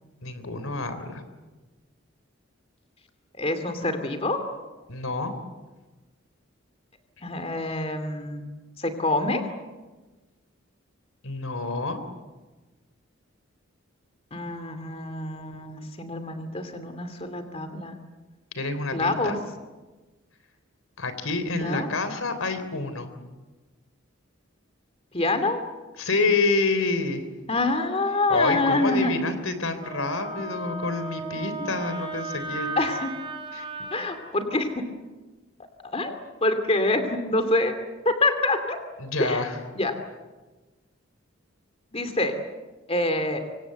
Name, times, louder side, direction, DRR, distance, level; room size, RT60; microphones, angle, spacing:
voice 1, 0.2-1.2 4.9-5.3 11.2-12.0 18.5-19.4 21.0-23.1 26.0-27.2 28.3-32.7 33.5-33.6 39.0-39.5, left 3 dB, 90° left, 10 dB, 3.6 m, -27 dB
voice 2, 3.4-4.4 7.2-8.4 8.8-9.4 14.3-18.0 18.9-19.4 21.6-21.9 25.1-25.6 27.5-29.3 31.6-31.7 32.8-33.1 33.9-34.8 35.8-36.2 36.4-37.8 38.0-38.8 39.2-39.5 39.8-39.9 41.9-42.3 42.9-43.4, left 2 dB, 30° left, 8 dB, 2.6 m, -26 dB
Wind instrument woodwind instrument, 29.8-34.2, right 3 dB, 25° right, 4.1 m, -35 dB
26.0 x 25.0 x 7.9 m, 1.2 s
head